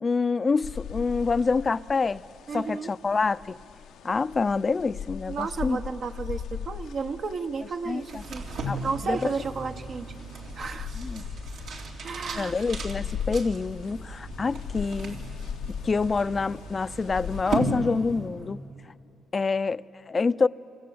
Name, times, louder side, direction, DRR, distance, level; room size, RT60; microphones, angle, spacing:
voice 1, 0.0-2.2 2.5-3.6 4.0-5.8 7.9-8.2 8.7-8.8 9.0-9.3 11.0-11.2 12.3-15.2 15.8-18.6 19.3-20.5, left 4 dB, 35° left, 15 dB, 0.6 m, -26 dB
sound 1, 0.6-17.4, left 8 dB, 80° left, 0.9 m, -39 dB
voice 2, 2.5-2.9 5.3-8.4 8.8-10.1 10.5-10.9 12.0-12.5, right 5 dB, 55° right, 5 dB, 1.2 m, -32 dB
sound 2, 8.0-18.5, right 2 dB, 75° right, 3.9 m, -36 dB
27.5 x 25.0 x 8.7 m, 2.6 s
cardioid pair, 90°, 0 cm